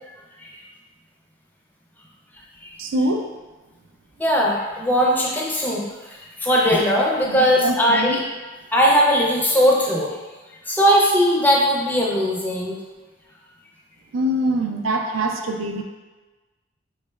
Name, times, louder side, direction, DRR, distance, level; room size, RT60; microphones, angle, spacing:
voice 1, 2.8-3.3 7.3-8.2 14.1-15.8, right 1 dB, 75° right, 4 dB, 0.4 m, -24 dB
voice 2, 4.2-8.2 8.7-10.2 10.7-12.8, equal, 10° left, -3 dB, 0.4 m, -19 dB
3.6 x 3.1 x 2.2 m, 1.2 s
head